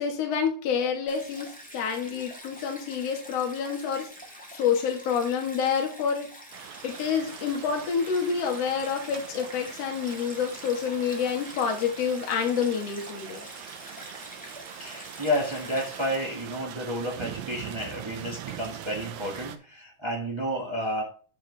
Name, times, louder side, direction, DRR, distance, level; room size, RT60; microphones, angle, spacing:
voice 1, 0.0-4.1 4.5-6.3 6.8-13.4, left 7 dB, 50° left, 2 dB, 2.5 m, -28 dB
Stream, 1.1-16.1, equal, 5° left, 0.6 m, -45 dB
sound 1, 6.5-19.6, right 11 dB, 80° right, 1.5 m, -43 dB
voice 2, 14.7-21.0, equal, 45° right, -1 dB, 0.3 m, -31 dB
12.0 x 4.8 x 3.4 m, 0.39 s
omnidirectional pair, 4.0 m